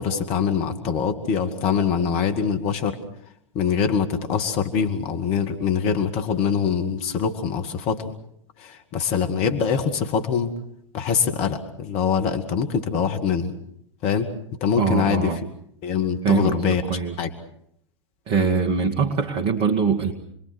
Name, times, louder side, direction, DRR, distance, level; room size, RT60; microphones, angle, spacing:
voice 1, 0.0-3.0 3.5-8.1 8.6-10.5 10.9-13.5 14.0-14.3 14.6-15.3 15.8-16.8 17.2-17.3, left 7 dB, 40° left, 6 dB, 2.3 m, -23 dB
voice 2, 14.8-15.4 16.2-17.3 18.3-20.1, right 5 dB, 35° right, 2 dB, 2.1 m, -23 dB
29.5 x 22.0 x 6.4 m, 0.73 s
figure-of-eight pair, 95°, 16 cm